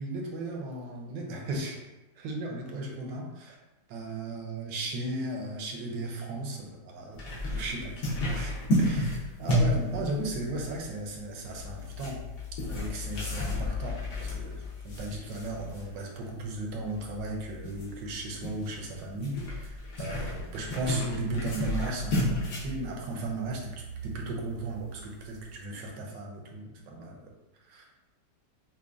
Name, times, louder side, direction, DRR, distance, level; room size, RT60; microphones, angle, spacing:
voice 1, 0.0-1.8 2.2-3.6 3.9-7.2 7.5-12.2 12.7-27.3 27.7-27.9, right 2 dB, 75° right, 0 dB, 1.3 m, -36 dB
sound 1, 7.1-25.6, left 1 dB, 65° left, 1.5 m, -33 dB
5.6 x 2.2 x 2.5 m, 1.0 s
omnidirectional pair, 2.0 m